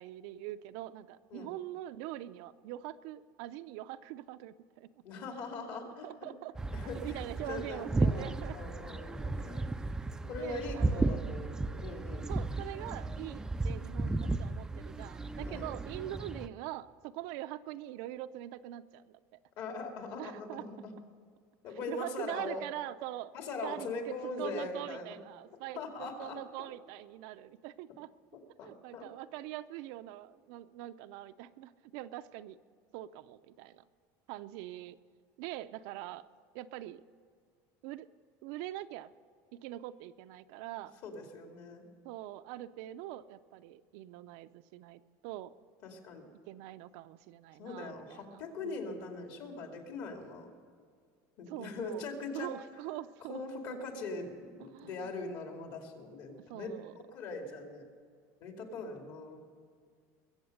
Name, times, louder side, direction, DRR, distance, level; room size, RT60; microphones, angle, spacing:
voice 1, 0.0-4.9 6.0-6.5 7.0-8.6 10.2-11.1 12.2-19.2 20.2-20.7 21.7-23.3 23.6-28.1 28.6-32.6 32.9-33.8 34.3-35.0 35.4-36.2 36.5-37.0 37.8-38.1 38.4-39.1 39.5-40.9 42.0-45.5 46.4-48.8 51.5-52.1 52.3-53.8 54.7-55.2 56.5-56.9, right 14 dB, 70° right, 12 dB, 0.5 m, -43 dB
voice 2, 5.0-6.1 6.7-9.6 10.3-12.3 15.5-15.7 19.6-20.9 21.6-22.6 23.3-25.1 25.8-26.4 28.6-29.1 41.0-41.8 45.8-46.3 47.6-50.5 51.4-52.5 53.3-56.7 57.1-57.8 58.4-59.4, left 3 dB, 55° left, 3 dB, 2.4 m, -41 dB
sound 1, 6.5-16.5, right 2 dB, 10° right, 0.3 m, -34 dB
22.0 x 8.0 x 6.5 m, 2.1 s
cardioid pair, 160°, 8 cm